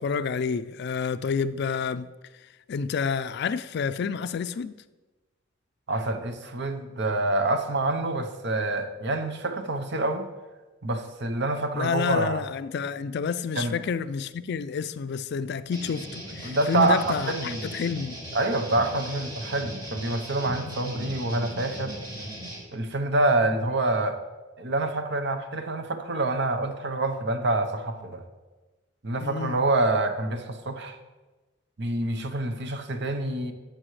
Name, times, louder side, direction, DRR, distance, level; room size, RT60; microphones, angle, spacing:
voice 1, 0.0-2.1 2.7-4.7 11.7-18.2 29.2-29.6, left 6 dB, 55° left, 0.4 m, -29 dB
voice 2, 5.9-10.3 10.8-12.4 13.6-13.8 16.4-17.6 18.3-21.9 22.7-24.2 24.6-28.2 29.0-31.0 31.8-33.5, right 2 dB, 60° right, 0.9 m, -27 dB
sound 1, 15.7-22.6, right 1 dB, 25° right, 2.6 m, -38 dB
12.5 x 8.2 x 3.2 m
head